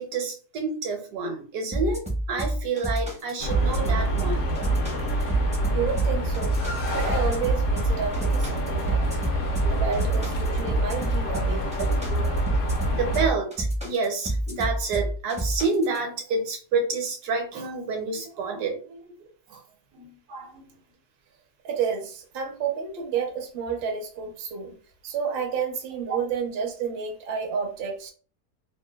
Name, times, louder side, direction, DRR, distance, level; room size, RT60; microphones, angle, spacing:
voice 1, 0.0-4.5 9.6-9.9 11.8-11.9 12.9-19.1 19.5-19.6 19.9-20.7, right 4 dB, 75° right, 1.2 m, -29 dB
sound 1, 1.7-16.0, right 1 dB, 10° right, 0.3 m, -28 dB
sound 2, 3.4-13.3, right 1 dB, 65° left, 0.8 m, -27 dB
voice 2, 5.7-6.6 6.9-9.1 9.5-11.9 21.6-24.8 25.0-28.1, right 6 dB, 60° right, 0.6 m, -30 dB
2.9 x 2.1 x 2.2 m
omnidirectional pair, 1.7 m